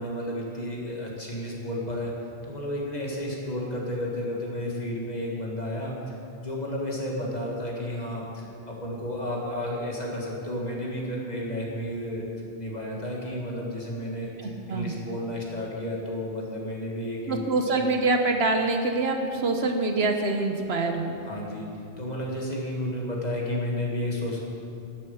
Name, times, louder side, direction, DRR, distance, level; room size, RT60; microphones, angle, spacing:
voice 1, 0.0-2.1 2.4-12.2 12.6-17.9 21.3-24.4, left 1 dB, 35° left, -3 dB, 2.1 m, -32 dB
voice 2, 17.3-21.2, right 3 dB, 65° right, 4 dB, 1.2 m, -25 dB
11.5 x 8.9 x 7.0 m, 2.7 s
omnidirectional pair, 1.2 m